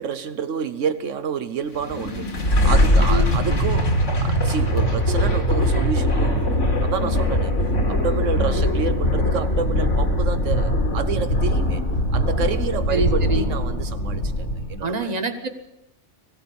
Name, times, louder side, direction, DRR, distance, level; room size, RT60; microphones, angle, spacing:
voice 1, 0.0-2.3 2.6-3.9 4.2-7.5 7.9-11.8 12.1-15.1, right 6 dB, 85° right, 10 dB, 1.3 m, -29 dB
sound 1, 1.7-14.8, left 1 dB, 80° left, 3.0 m, -21 dB
voice 2, 3.1-3.6 12.9-13.4 14.8-15.5, right 3 dB, 35° right, 6 dB, 1.7 m, -26 dB
20.5 x 15.5 x 8.6 m, 0.87 s
omnidirectional pair, 1.2 m